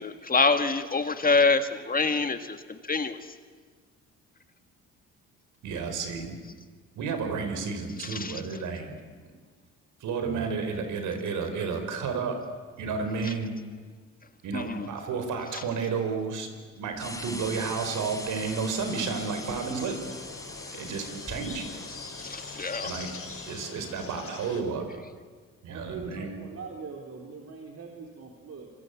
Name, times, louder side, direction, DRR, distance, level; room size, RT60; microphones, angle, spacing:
voice 1, 0.0-3.2 8.0-8.4 14.5-14.9 15.5-15.6 22.2-22.9, left 4 dB, 30° left, 8 dB, 1.8 m, -26 dB
voice 2, 5.6-6.4 7.0-9.0 10.0-12.4 12.8-13.5 14.4-16.5 16.8-20.0 20.8-21.7 22.8-23.1 23.4-25.0 25.6-26.3, right 5 dB, 80° right, 6 dB, 4.9 m, -31 dB
sound 1, 16.9-23.7, left 2 dB, 10° left, 3.4 m, -41 dB
sound 2, 18.4-24.6, left 5 dB, 50° left, 5.7 m, -43 dB
voice 3, 25.7-28.7, right 4 dB, 55° right, 0 dB, 4.1 m, -42 dB
26.5 x 25.5 x 8.5 m, 1.5 s
cardioid pair, 90°, 30 cm